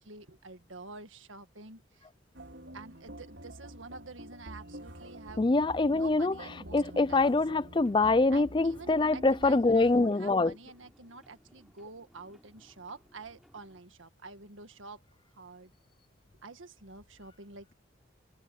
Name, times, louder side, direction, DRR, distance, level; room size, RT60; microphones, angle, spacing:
voice 1, 0.0-2.1 2.7-5.5 5.9-7.4 8.3-15.0 15.3-15.7 16.4-17.7, right 3 dB, 85° right, 1.8 m, -48 dB
sound 1, 2.3-10.1, right 1 dB, 70° right, 4.8 m, -47 dB
voice 2, 5.4-6.3 6.7-10.5, left 3 dB, 25° left, 0.4 m, -25 dB
sound 2, 7.8-13.8, equal, ahead, 5.3 m, -63 dB
head